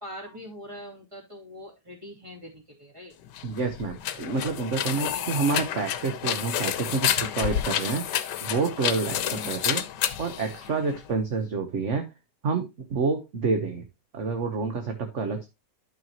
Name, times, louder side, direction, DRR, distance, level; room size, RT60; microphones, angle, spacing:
voice 1, 0.0-3.1 5.0-5.2 9.3-9.6, equal, 15° right, -2 dB, 2.9 m, -42 dB
sound 1, 3.3-11.1, left 10 dB, 80° left, 1.4 m, -30 dB
voice 2, 3.4-8.1 8.4-9.8 10.2-12.1 12.4-13.9 14.1-15.5, right 4 dB, 45° right, 5 dB, 1.4 m, -28 dB
12.0 x 5.9 x 2.9 m, 0.24 s
omnidirectional pair, 1.8 m